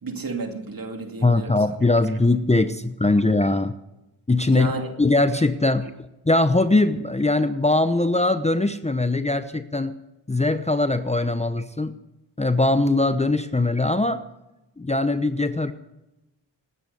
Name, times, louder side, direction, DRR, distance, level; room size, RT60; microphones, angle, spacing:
voice 1, 0.0-1.8 4.5-4.9, right 3 dB, 45° right, 2.6 m, -31 dB
voice 2, 1.2-3.8 4.3-4.7 5.0-5.9 6.2-10.0 10.3-11.9 12.4-14.2 14.8-15.7, left 2 dB, 15° left, 0.8 m, -21 dB
19.0 x 9.6 x 6.8 m
cardioid pair, 50°, 46 cm